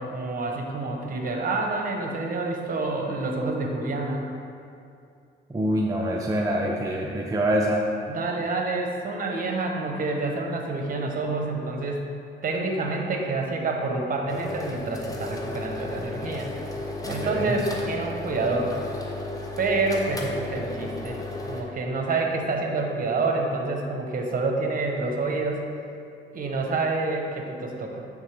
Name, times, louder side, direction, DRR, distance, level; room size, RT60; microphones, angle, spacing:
voice 1, 0.0-4.3 8.1-12.0 12.4-16.5 17.1-18.7 19.6-21.2 21.5-25.7 26.3-28.0, right 3 dB, 45° right, 1 dB, 1.0 m, -28 dB
voice 2, 5.5-7.9 17.0-17.6, right 1 dB, 15° right, -1 dB, 0.5 m, -25 dB
sound 1, 14.3-21.6, left 2 dB, 20° left, 0.8 m, -34 dB
8.8 x 3.8 x 3.4 m, 2.5 s
cardioid pair, 90°, 20 cm